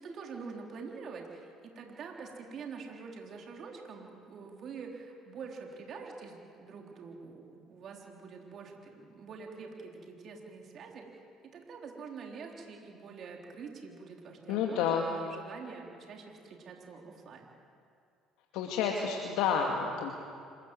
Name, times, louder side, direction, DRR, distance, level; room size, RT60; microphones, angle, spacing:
voice 1, 0.0-11.2 11.5-14.8 15.1-17.4, right 5 dB, 55° right, 1 dB, 3.8 m, -46 dB
voice 2, 14.5-15.0 18.5-20.1, left 7 dB, 70° left, 1 dB, 2.2 m, -30 dB
26.5 x 15.0 x 7.9 m, 2.4 s
hypercardioid pair, 65°, 0 cm